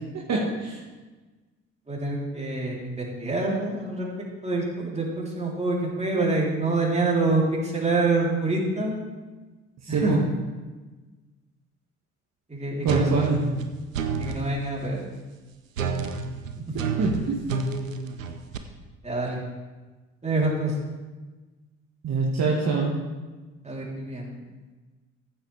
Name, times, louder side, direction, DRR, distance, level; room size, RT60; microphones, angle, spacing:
voice 1, 0.1-0.8 9.8-10.2 12.8-13.4 17.0-17.4 22.0-23.0, right 4 dB, 45° right, -2 dB, 1.8 m, -24 dB
voice 2, 1.9-4.1 4.4-9.0 9.9-10.2 12.5-13.3 14.2-15.0 16.7-16.8 19.0-19.4 20.2-20.7 23.6-24.4, right 2 dB, 15° right, -3 dB, 3.5 m, -26 dB
sound 1, 12.9-14.5 15.8-18.6, right 5 dB, 90° right, 0.7 m, -29 dB
14.5 x 8.3 x 3.4 m, 1.2 s
figure-of-eight pair, 50°, 38 cm